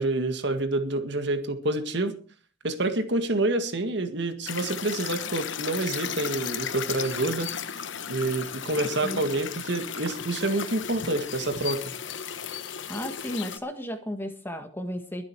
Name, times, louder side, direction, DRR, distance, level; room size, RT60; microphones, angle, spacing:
voice 1, 0.0-2.2 2.6-7.7 8.1-11.8, right 2 dB, 60° right, 8 dB, 1.9 m, -28 dB
sound 1, 4.5-13.6, left 8 dB, 70° left, 1.0 m, -35 dB
voice 2, 8.7-9.2 12.9-15.2, equal, 10° left, 6 dB, 1.6 m, -34 dB
22.5 x 7.9 x 4.7 m, 0.39 s
head